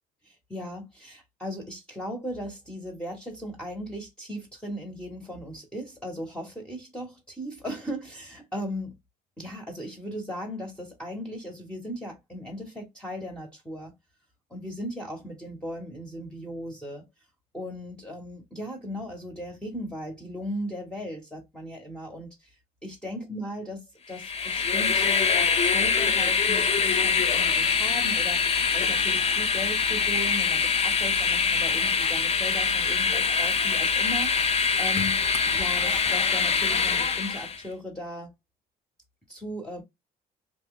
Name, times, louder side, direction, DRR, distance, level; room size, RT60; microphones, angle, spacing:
voice 1, 0.2-8.9 9.4-13.9 14.5-17.0 17.5-22.5 22.8-23.8 24.1-35.2 35.5-38.3 39.3-39.8, equal, 5° left, 1.0 m, -37 dB
Train, 24.1-37.6, left 5 dB, 40° left, 0.6 m, -24 dB
2.8 x 2.2 x 3.8 m
cardioid pair, 110°, 17 cm